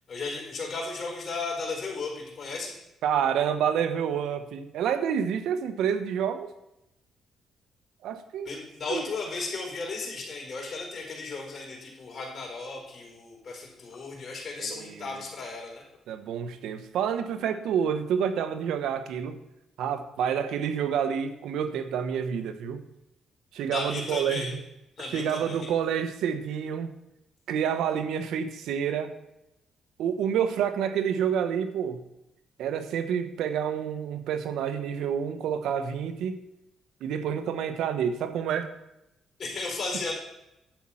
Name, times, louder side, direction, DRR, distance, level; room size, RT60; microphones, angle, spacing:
voice 1, 0.1-2.7 8.4-15.8 23.7-24.5 25.0-25.7 39.4-40.1, left 3 dB, 45° left, -1 dB, 4.3 m, -35 dB
voice 2, 3.0-6.5 8.0-8.5 8.9-9.0 14.6-15.0 16.1-19.4 19.8-22.8 23.5-24.6 25.0-26.9 27.5-29.1 30.0-32.0 32.6-36.4 37.0-38.7, right 8 dB, 85° right, 10 dB, 1.1 m, -28 dB
10.5 x 7.6 x 5.7 m, 0.86 s
cardioid pair, 90°, 0 cm